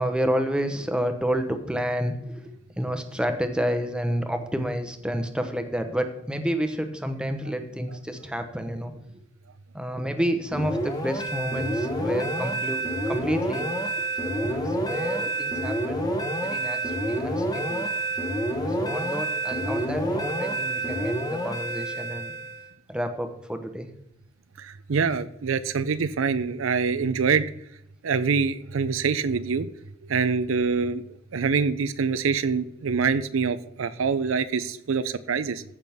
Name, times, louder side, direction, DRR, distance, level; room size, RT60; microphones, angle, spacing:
voice 1, 0.0-8.9 9.7-13.8 14.2-16.0 16.4-17.9 18.8-22.3 22.9-23.9, equal, 5° right, 7 dB, 0.9 m, -30 dB
sound 1, 10.5-22.6, right 1 dB, 20° left, 1.3 m, -28 dB
voice 2, 24.6-27.5 28.0-29.7 30.1-31.0 31.3-35.6, right 5 dB, 80° right, 14 dB, 0.5 m, -25 dB
14.5 x 5.9 x 3.5 m, 0.78 s
head